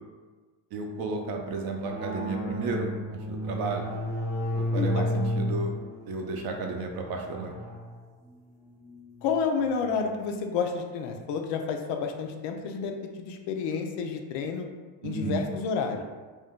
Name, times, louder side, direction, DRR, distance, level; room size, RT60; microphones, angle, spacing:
voice 1, 0.7-3.9 4.5-5.7 6.1-7.5 15.0-15.5, right 3 dB, 55° right, 2 dB, 0.5 m, -32 dB
sound 1, 1.8-9.9, left 1 dB, 5° right, 0.4 m, -33 dB
voice 2, 4.8-5.1 9.2-14.7 15.0-16.0, left 5 dB, 70° left, 4 dB, 0.5 m, -30 dB
2.6 x 2.1 x 3.5 m, 1.3 s
cardioid pair, 135°, 44 cm